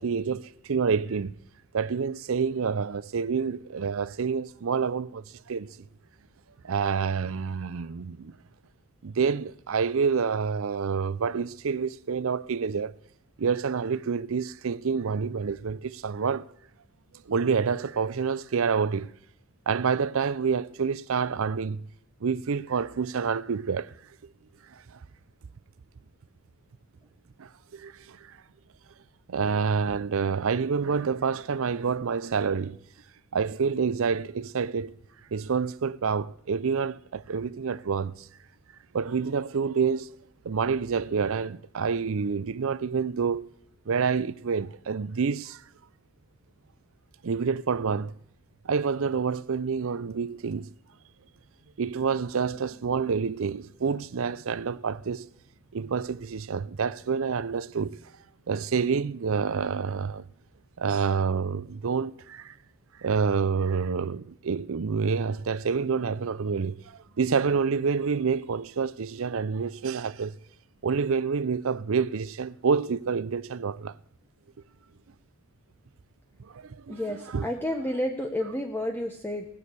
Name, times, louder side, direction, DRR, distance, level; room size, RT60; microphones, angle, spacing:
voice 1, 0.0-1.4 1.7-5.7 6.6-8.3 9.0-12.9 13.4-16.5 17.3-19.1 19.7-21.8 22.2-23.9 24.7-25.0 27.4-28.3 29.3-32.8 33.3-34.9 35.3-38.3 38.9-40.2 40.4-43.4 43.9-45.6 47.2-48.2 48.6-50.7 51.8-55.3 55.7-58.0 58.5-60.2 60.8-62.5 63.0-70.4 70.8-73.9 76.4-77.5, right 5 dB, 70° right, 0.5 m, -28 dB
voice 2, 76.9-79.5, left 1 dB, 10° left, 0.9 m, -30 dB
19.5 x 6.5 x 8.2 m
head